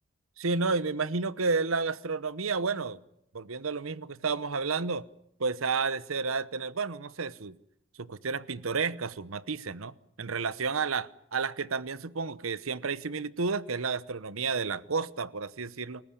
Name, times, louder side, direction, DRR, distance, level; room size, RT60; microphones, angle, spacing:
voice 1, 0.4-3.0 3.3-5.0 5.4-7.6 8.0-16.0, right 4 dB, 85° right, 18 dB, 0.9 m, -31 dB
28.5 x 15.0 x 9.9 m, 0.76 s
head